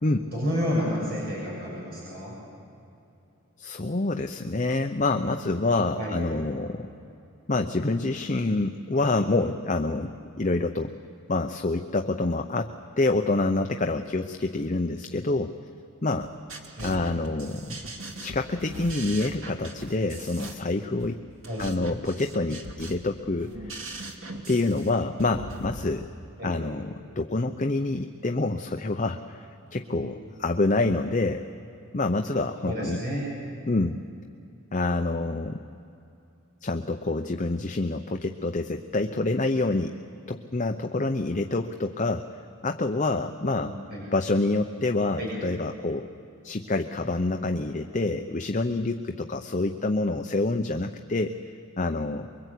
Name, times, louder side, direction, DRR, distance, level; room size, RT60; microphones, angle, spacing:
voice 1, 0.3-2.3 5.9-6.1 16.8-16.9 21.5-21.6 26.4-26.5 29.9-30.0 32.6-33.3 43.6-44.0 45.2-45.3, equal, 45° right, -5 dB, 7.1 m, -30 dB
voice 2, 3.6-6.9 7.5-10.9 11.3-15.6 16.0-16.3 16.8-17.8 18.2-21.2 21.6-23.8 24.5-26.1 26.4-31.4 31.9-33.0 33.7-34.0 34.7-35.6 36.6-40.0 40.3-42.3 42.6-43.7 44.1-46.1 46.4-51.3 51.8-52.3, left 2 dB, 35° left, 5 dB, 0.7 m, -27 dB
sound 1, 16.2-25.8, right 1 dB, 65° right, 2.4 m, -40 dB
24.0 x 23.0 x 8.4 m, 2.7 s
head